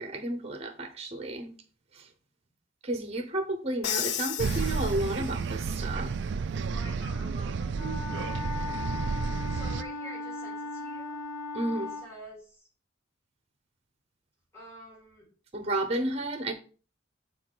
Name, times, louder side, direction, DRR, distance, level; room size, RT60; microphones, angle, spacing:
voice 1, 0.0-1.5 1.9-2.1 2.8-6.1 11.5-11.9 15.5-16.5, right 1 dB, 30° right, 0.8 m, -32 dB
Crash cymbal, 3.8-5.6, left 11 dB, 55° left, 0.4 m, -34 dB
sound 1, 4.4-9.8, right 5 dB, 55° right, 0.4 m, -31 dB
voice 2, 6.7-7.9 9.5-11.2 11.8-12.7 14.5-15.3, equal, 15° left, 3.1 m, -48 dB
Wind instrument woodwind instrument, 7.7-12.1, left 3 dB, 30° left, 1.2 m, -37 dB
6.4 x 4.1 x 4.7 m
head